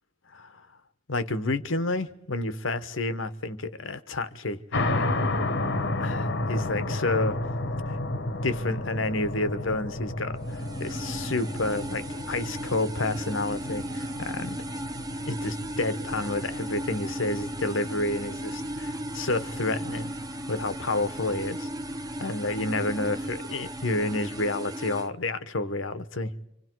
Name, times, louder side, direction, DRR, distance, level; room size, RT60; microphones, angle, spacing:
voice 1, 0.3-0.7 1.1-4.6 6.0-7.4 7.9-8.0 8.4-14.6 15.3-20.1 20.5-21.7 22.2-26.3, left 2 dB, 90° left, 1.2 m, -30 dB
sound 1, 4.7-24.4, left 2 dB, 65° left, 1.1 m, -33 dB
sound 2, 10.4-25.1, right 1 dB, 20° right, 0.8 m, -36 dB
29.0 x 26.0 x 4.7 m
head